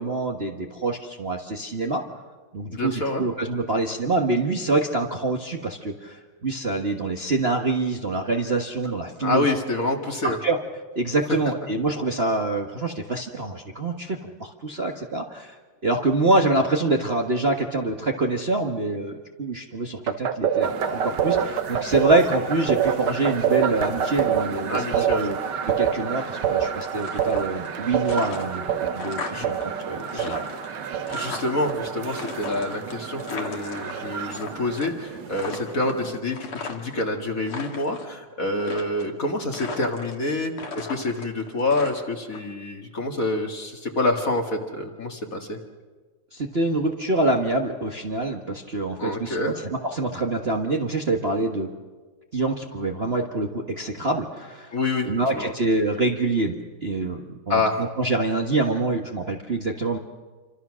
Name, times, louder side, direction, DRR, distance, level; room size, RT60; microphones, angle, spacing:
voice 1, 0.0-2.0 2.5-9.4 10.2-10.6 10.9-15.5 15.8-25.4 25.8-30.5 46.3-51.7 52.3-54.7 55.0-56.6 56.8-60.0, right 2 dB, 35° right, 1 dB, 1.4 m, -25 dB
voice 2, 2.7-3.2 9.2-10.4 24.7-25.3 29.3-29.5 30.1-30.3 31.1-45.6 49.0-49.6 54.7-55.1 55.3-55.5 57.5-57.8, left 2 dB, 40° left, 3 dB, 2.4 m, -27 dB
sound 1, 20.1-34.9, right 8 dB, 80° right, 2.2 m, -27 dB
sound 2, 20.6-36.2, right 6 dB, 55° right, 1.8 m, -39 dB
sound 3, 26.9-27.7 28.0-29.6 29.9-31.7 32.1-34.5 34.8-35.1 35.3-37.0 37.4-38.1 38.6-39.2 39.5-40.3 40.6-42.4, left 4 dB, 75° left, 3.1 m, -37 dB
28.0 x 25.5 x 6.3 m, 1.4 s
omnidirectional pair, 2.4 m